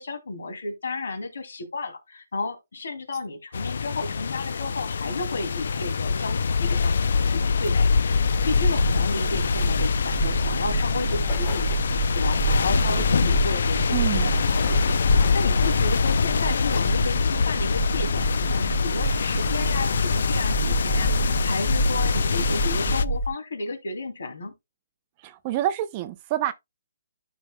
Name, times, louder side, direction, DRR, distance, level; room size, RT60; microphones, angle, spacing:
voice 1, 0.0-11.8 12.1-24.5, left 3 dB, 85° left, 2.7 m, -33 dB
sound 1, 3.5-23.1, left 5 dB, 65° left, 0.4 m, -24 dB
sound 2, 8.1-23.3, right 1 dB, 30° left, 2.4 m, -28 dB
voice 2, 13.9-14.3 25.2-26.5, right 13 dB, 25° right, 0.6 m, -27 dB
13.0 x 5.1 x 2.2 m
hypercardioid pair, 170°, 0 cm